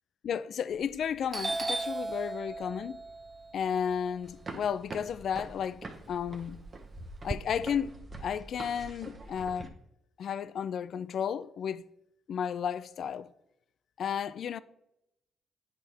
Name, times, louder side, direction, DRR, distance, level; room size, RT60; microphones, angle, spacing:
voice 1, 0.2-3.0 3.5-6.6 7.2-9.7 10.2-11.8 12.3-13.3 14.0-14.6, left 8 dB, 60° left, 0.3 m, -33 dB
Doorbell, 0.7-1.0 1.3-5.5 5.8-7.4, right 2 dB, 20° right, 0.4 m, -37 dB
sound 1, 4.2-9.7, right 2 dB, 40° right, 1.0 m, -45 dB
9.3 x 4.4 x 3.4 m
cardioid pair, 90°, 0 cm